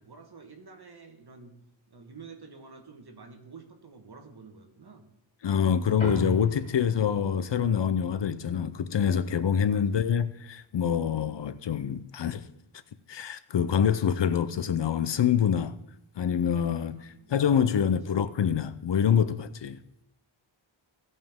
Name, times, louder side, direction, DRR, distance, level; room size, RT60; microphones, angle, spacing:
voice 1, 0.0-1.5 1.9-5.0 9.6-10.0 16.9-17.3, right 4 dB, 50° right, 1.5 m, -49 dB
voice 2, 5.4-12.4 13.1-15.8 16.2-19.8, left 8 dB, 60° left, 0.6 m, -26 dB
sound 1, 6.0-10.7, left 1 dB, 15° left, 4.2 m, -39 dB
16.5 x 5.5 x 3.6 m
wide cardioid pair, 100°, 49 cm